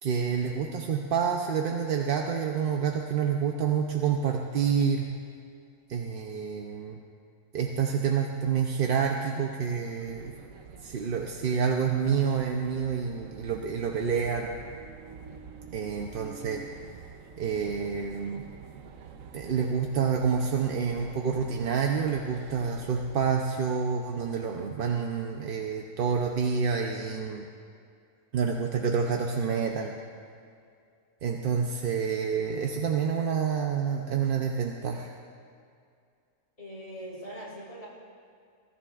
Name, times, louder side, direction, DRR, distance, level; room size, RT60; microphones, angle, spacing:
voice 1, 0.0-5.1 5.9-7.0 7.5-10.3 10.8-14.5 15.7-16.6 17.4-18.4 19.3-27.5 28.3-29.9 31.2-35.1, right 6 dB, 50° right, 2 dB, 0.8 m, -28 dB
sound 1, 10.0-23.4, right 6 dB, 80° right, 1.1 m, -48 dB
voice 2, 36.6-37.9, equal, 55° left, -7 dB, 4.1 m, -41 dB
21.5 x 14.0 x 2.4 m, 2.3 s
omnidirectional pair, 1.4 m